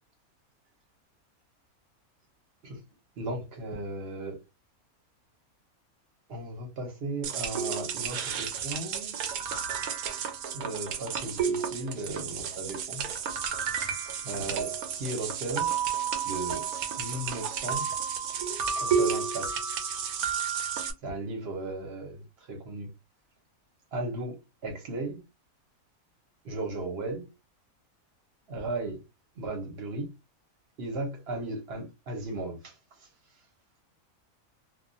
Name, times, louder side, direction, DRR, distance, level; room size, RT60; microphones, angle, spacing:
voice 1, 3.2-4.4 6.3-9.2 10.5-13.1 14.2-15.8 16.2-16.6 17.0-17.8 18.8-19.6 21.0-22.9 23.9-25.2 26.4-27.3 28.5-29.0 29.4-30.1 30.8-33.1, right 2 dB, 50° right, 0.9 m, -36 dB
sound 1, 7.2-20.9, right 7 dB, 80° right, 1.1 m, -31 dB
2.3 x 2.2 x 2.6 m
omnidirectional pair, 1.5 m